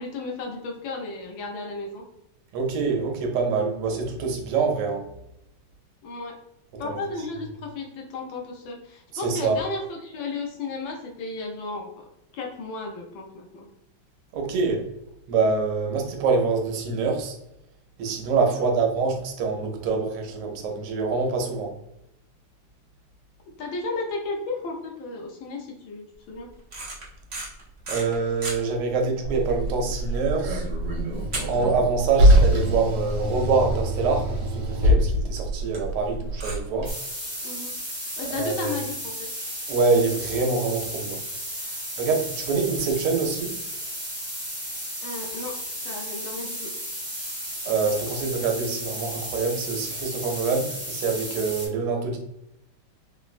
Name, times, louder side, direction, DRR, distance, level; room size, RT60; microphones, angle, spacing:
voice 1, 0.0-2.1 6.0-6.4 6.8-12.0 12.3-13.7 18.5-18.8 23.6-26.5 37.4-37.7 38.2-39.1 45.0-45.6 45.8-46.7, left 3 dB, 75° left, 1.2 m, -34 dB
voice 2, 2.5-5.1 6.8-7.0 9.1-9.6 14.3-14.9 15.3-17.3 18.0-21.7 27.9-30.6 31.5-36.9 38.3-38.8 39.7-41.2 42.0-43.5 47.6-52.2, right 4 dB, 85° right, 1.6 m, -25 dB
sound 1, 26.6-28.6 29.1-29.2 29.5-29.7 30.1-30.2 31.3-32.2 32.4-32.5 33.0-33.1 33.4-33.5 33.7-33.8 35.0-35.1 36.4-36.6, right 2 dB, 55° right, 0.7 m, -34 dB
Car, 29.2-36.9, equal, 70° right, 1.6 m, -23 dB
sound 2, 36.8-51.7, equal, 15° right, 0.5 m, -34 dB
3.8 x 2.0 x 2.4 m
omnidirectional pair, 2.4 m